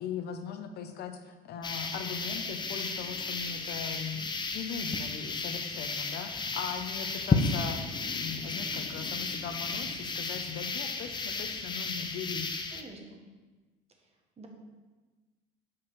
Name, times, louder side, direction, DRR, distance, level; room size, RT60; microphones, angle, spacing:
voice 1, 0.0-7.8 8.1-12.5, left 7 dB, 60° left, 7 dB, 0.9 m, -39 dB
sound 1, 1.6-12.8, left 4 dB, 25° left, 0.7 m, -33 dB
voice 2, 12.7-13.2 14.4-14.5, right 2 dB, 35° right, 2 dB, 1.6 m, -47 dB
5.8 x 5.0 x 6.1 m, 1.3 s
supercardioid pair, 85°, 19 cm